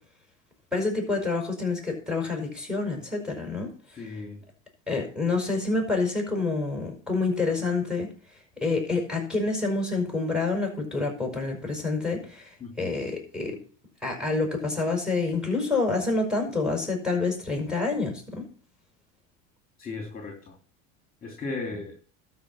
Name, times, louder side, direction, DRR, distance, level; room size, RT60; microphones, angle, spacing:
voice 1, 0.7-3.7 4.9-8.1 8.6-12.5 12.8-13.6 14.0-18.5, left 3 dB, ahead, 2 dB, 5.7 m, -27 dB
voice 2, 3.9-4.4 12.6-12.9 19.8-20.4 21.2-21.9, left 3 dB, 20° left, 2 dB, 2.9 m, -35 dB
12.5 x 5.2 x 7.7 m, 0.43 s
supercardioid pair, 105°, 40 cm